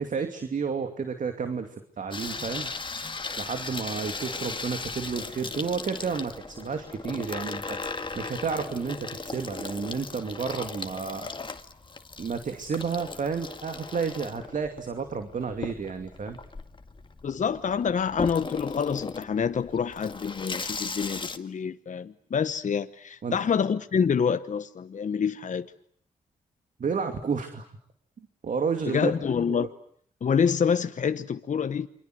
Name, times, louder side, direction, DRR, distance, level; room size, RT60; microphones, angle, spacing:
voice 1, 0.0-2.7 3.4-11.3 12.2-16.4 23.2-23.4 26.8-27.7 28.4-29.1 29.5-29.6, right 5 dB, 60° right, 2.6 m, -31 dB
Water tap faucet / Sink (filling or washing), 2.1-21.4, left 3 dB, 35° left, 2.0 m, -37 dB
voice 2, 17.2-25.7 28.9-29.7 30.2-31.9, left 6 dB, 55° left, 1.1 m, -27 dB
28.5 x 25.0 x 7.9 m
cardioid pair, 55°, 15 cm